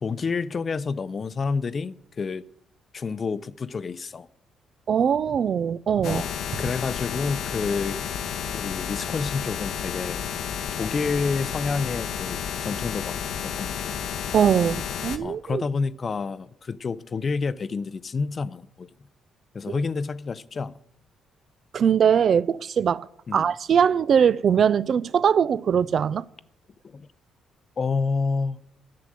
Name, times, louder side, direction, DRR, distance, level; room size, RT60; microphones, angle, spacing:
voice 1, 0.0-2.5 2.9-4.3 6.0-6.3 6.6-8.1 8.5-10.2 10.8-14.0 15.2-18.9 19.5-20.8 23.3-23.5 26.8-27.1 27.8-28.6, left 4 dB, 40° left, 0.5 m, -29 dB
voice 2, 4.9-6.2 14.3-15.6 19.7-19.8 21.7-23.1 23.3-26.2, right 7 dB, 55° right, 0.3 m, -21 dB
sound 1, 6.0-15.2, left 8 dB, 80° left, 0.8 m, -31 dB
11.5 x 7.7 x 7.5 m
cardioid pair, 90°, 0 cm